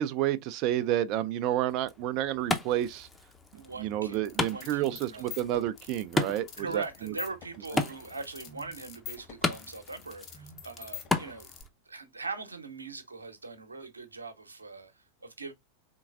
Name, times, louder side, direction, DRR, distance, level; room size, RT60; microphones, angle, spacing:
voice 1, 0.0-3.1 3.8-6.8, right 12 dB, 40° right, 0.4 m, -30 dB
Wood, 1.7-11.7, left 2 dB, 10° left, 0.6 m, -36 dB
voice 2, 3.5-5.4 6.6-11.5 11.8-15.5, right 3 dB, 80° right, 0.9 m, -41 dB
sound 1, 4.1-11.6, left 8 dB, 35° left, 1.3 m, -45 dB
4.4 x 3.8 x 2.4 m
figure-of-eight pair, 90°, 0 cm